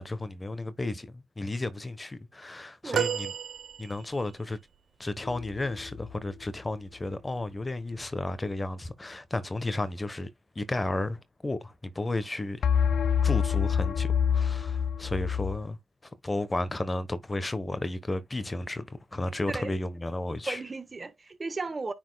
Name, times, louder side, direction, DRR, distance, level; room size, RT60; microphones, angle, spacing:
voice 1, 0.0-3.3 3.8-4.6 5.0-10.3 10.5-12.6 13.2-15.8 16.2-20.6, left 2 dB, 25° left, 1.1 m, -33 dB
sound 1, 2.9-4.4 6.7-6.9 8.2-8.3, right 9 dB, 75° right, 0.5 m, -32 dB
sound 2, 5.2-6.1 12.6-15.6, left 7 dB, 75° left, 0.4 m, -27 dB
voice 2, 20.5-21.9, right 3 dB, 40° right, 1.3 m, -35 dB
9.4 x 4.5 x 2.3 m
supercardioid pair, 55°, 0 cm